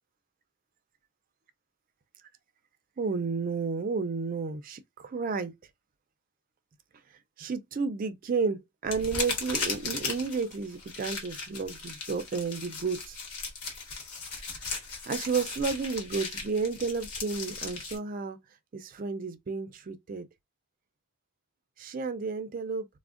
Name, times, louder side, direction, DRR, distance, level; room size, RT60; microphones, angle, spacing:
voice 1, 3.0-5.5 7.4-13.2 14.5-14.6 15.1-18.4 18.7-20.3 21.8-22.9, right 4 dB, 40° right, 0.3 m, -32 dB
sound 1, 8.9-18.0, left 4 dB, 80° left, 1.1 m, -37 dB
3.3 x 2.0 x 2.4 m
head